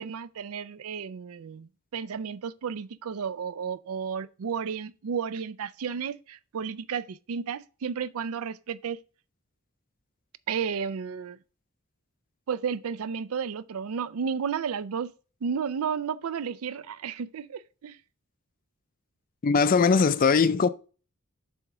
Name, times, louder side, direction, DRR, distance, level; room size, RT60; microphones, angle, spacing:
voice 1, 0.0-9.0 10.5-11.4 12.5-15.1 15.4-18.0, right 6 dB, 90° right, 0.4 m, -32 dB
voice 2, 19.4-20.7, left 5 dB, 40° left, 0.4 m, -20 dB
7.0 x 3.6 x 4.9 m
head